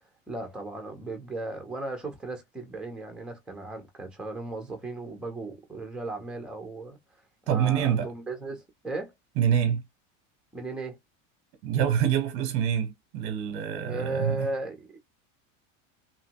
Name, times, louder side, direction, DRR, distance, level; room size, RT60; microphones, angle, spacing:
voice 1, 0.3-7.0 7.5-9.1 10.5-11.0 13.8-15.0, right 2 dB, ahead, 0.4 m, -36 dB
voice 2, 7.5-8.1 9.4-9.8 11.6-14.5, right 9 dB, 30° right, 0.7 m, -26 dB
2.9 x 2.6 x 2.8 m
cardioid pair, 170°, 38 cm